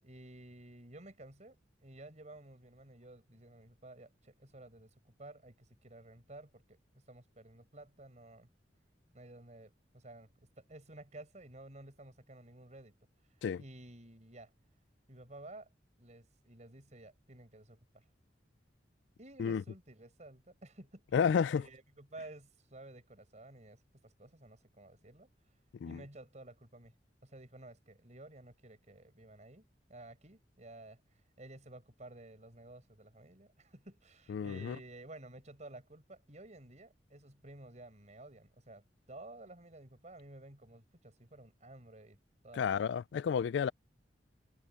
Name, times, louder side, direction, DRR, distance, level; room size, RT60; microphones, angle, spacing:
voice 1, 0.0-6.8 7.1-8.5 9.1-12.9 13.6-14.5 15.1-15.7 16.0-18.0 19.2-21.0 21.6-25.3 25.8-26.9 27.2-31.0 31.4-42.2 42.4-42.8, right 2 dB, 40° right, 5.4 m, -53 dB
voice 2, 21.1-21.6 25.8-26.0 34.3-34.8 42.5-43.7, left 7 dB, 70° left, 0.3 m, -31 dB
head